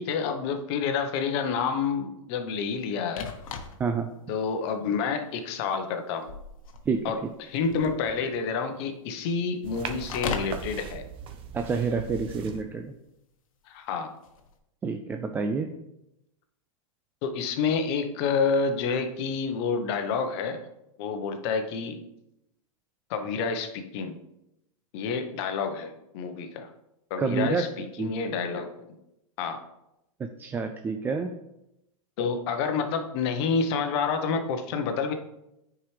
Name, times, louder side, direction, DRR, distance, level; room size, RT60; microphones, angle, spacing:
voice 1, 0.0-3.3 4.3-6.3 7.0-11.0 13.7-14.1 17.2-20.6 21.0-22.0 23.1-24.2 24.9-26.7 27.1-28.7 29.4-29.6 32.2-35.1, left 5 dB, 50° left, 6 dB, 1.0 m, -28 dB
sound 1, 3.1-4.0 4.5-4.6 5.5-5.8 6.1-8.4 9.9-10.6 14.2-14.6, left 5 dB, 75° left, 1.2 m, -37 dB
voice 2, 6.9-7.3 11.5-12.9 14.8-15.7 27.2-27.7 28.0-28.1 30.2-31.3, right 5 dB, 10° right, 6 dB, 0.3 m, -28 dB
sound 2, 9.6-12.6, right 7 dB, 30° right, 0.7 m, -39 dB
9.4 x 4.9 x 3.3 m, 0.87 s
hypercardioid pair, 135°, 17 cm